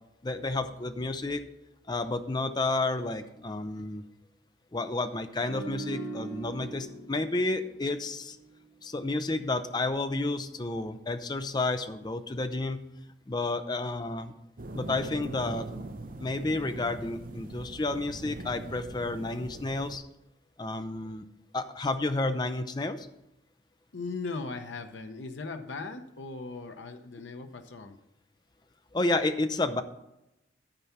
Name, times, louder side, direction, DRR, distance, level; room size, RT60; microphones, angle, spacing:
voice 1, 0.2-1.4 1.9-4.0 4.7-8.4 8.8-12.8 13.3-14.3 14.7-15.7 16.2-20.0 20.6-21.3 21.5-23.1 28.9-29.8, left 2 dB, 25° left, 9 dB, 0.5 m, -31 dB
sound 1, 5.4-8.7 9.0-9.2, right 3 dB, 65° left, 1.0 m, -41 dB
sound 2, 14.6-20.0, right 2 dB, 50° right, 0.7 m, -41 dB
voice 2, 23.9-28.0, left 3 dB, 80° left, 7 dB, 0.7 m, -38 dB
11.5 x 4.5 x 5.6 m, 0.89 s
head